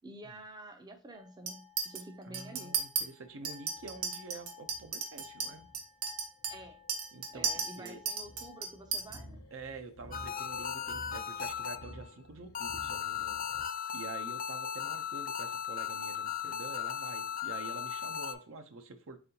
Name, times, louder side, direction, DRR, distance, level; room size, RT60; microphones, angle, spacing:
voice 1, 0.0-2.7 6.5-6.8 7.3-9.4, right 1 dB, 20° right, 0.5 m, -49 dB
Chink clink, 1.5-2.0 2.3-3.0 3.4-9.2, right 5 dB, 85° right, 0.9 m, -36 dB
voice 2, 2.2-5.7 7.1-8.0 9.5-13.4 13.9-19.2, right 3 dB, 65° right, 0.6 m, -47 dB
sound 1, 3.2-13.6, equal, 80° left, 0.7 m, -53 dB
sound 2, 10.1-12.1 12.5-18.3, left 8 dB, 40° left, 0.4 m, -37 dB
4.1 x 3.8 x 2.7 m
head